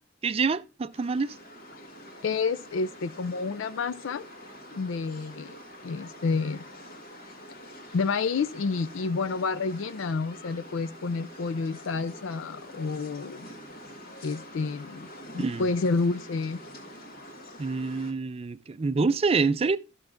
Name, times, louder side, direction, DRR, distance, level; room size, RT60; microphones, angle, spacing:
voice 1, 0.2-1.4 15.4-15.6 17.6-19.8, right 4 dB, 30° right, 0.4 m, -26 dB
sound 1, 0.9-18.1, equal, 50° left, 1.8 m, -46 dB
voice 2, 2.2-4.2 4.7-5.5 5.8-6.6 7.9-13.5 14.2-15.1 15.3-16.6, left 4 dB, 75° left, 0.5 m, -29 dB
13.0 x 6.0 x 3.7 m
head